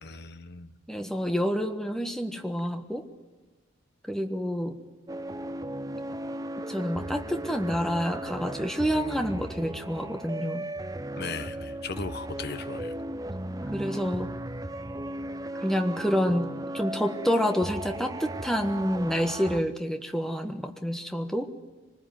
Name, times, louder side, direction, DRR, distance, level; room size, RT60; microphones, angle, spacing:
voice 1, 0.0-0.7 11.2-13.0, left 4 dB, 55° left, 11 dB, 1.2 m, -37 dB
voice 2, 0.9-3.0 4.1-4.8 6.7-10.7 13.7-14.3 15.6-16.5 16.7-21.5, equal, ahead, 6 dB, 1.4 m, -28 dB
sound 1, 5.1-19.6, right 1 dB, 20° right, 0.7 m, -36 dB
24.5 x 20.0 x 9.4 m, 1.3 s
head